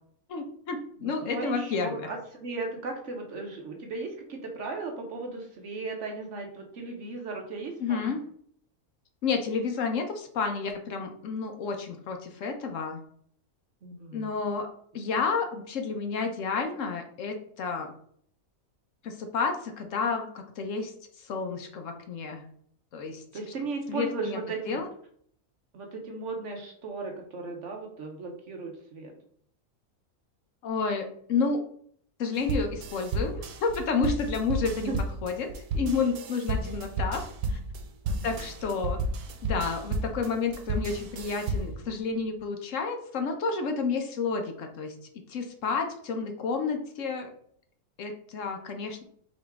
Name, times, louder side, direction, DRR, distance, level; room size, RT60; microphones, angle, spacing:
voice 1, 0.3-2.0 7.8-8.2 9.2-13.0 14.1-14.7 14.9-17.9 19.0-20.9 21.2-22.4 22.9-23.2 23.9-24.4 24.7-24.8 30.6-31.6 32.2-34.9 35.2-37.2 37.5-37.6 38.2-39.0 39.4-44.9 45.3-47.3 48.0-49.0, left 4 dB, 65° left, 5 dB, 1.0 m, -30 dB
voice 2, 1.0-8.2 13.8-14.4 23.3-24.8 25.7-29.1 34.8-35.0 36.6-36.9 38.0-38.4, right 3 dB, 60° right, 3 dB, 1.0 m, -36 dB
sound 1, 32.4-41.8, right 2 dB, 90° right, 1.2 m, -32 dB
5.0 x 3.0 x 3.4 m, 0.62 s
omnidirectional pair, 1.5 m